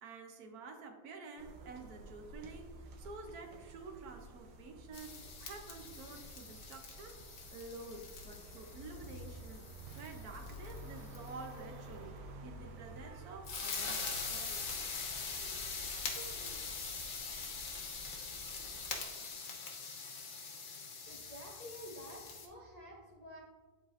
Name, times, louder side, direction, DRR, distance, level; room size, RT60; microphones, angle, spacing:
voice 1, 0.0-7.2 7.5-14.8, right 3 dB, 70° right, 4 dB, 1.2 m, -50 dB
sound 1, 1.4-19.0, right 1 dB, 85° right, 1.4 m, -51 dB
sound 2, 4.9-11.3 13.4-22.5, left 5 dB, 60° left, 1.3 m, -43 dB
voice 2, 21.0-23.4, equal, 35° left, -4 dB, 0.6 m, -50 dB
10.5 x 4.1 x 2.5 m, 1.3 s
omnidirectional pair, 1.8 m